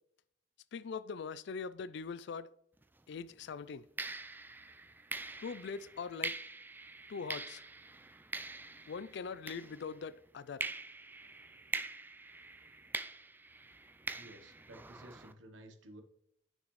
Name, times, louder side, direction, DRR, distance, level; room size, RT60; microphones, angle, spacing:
voice 1, 0.7-2.5 3.1-3.9 5.4-6.4 7.1-7.6 8.9-10.7, left 5 dB, 65° left, 0.4 m, -42 dB
sound 1, 2.8-3.0 4.0-10.1 10.6-15.3, right 3 dB, 10° right, 0.4 m, -44 dB
voice 2, 14.1-16.0, right 1 dB, 85° right, 1.1 m, -54 dB
8.7 x 6.3 x 3.2 m
head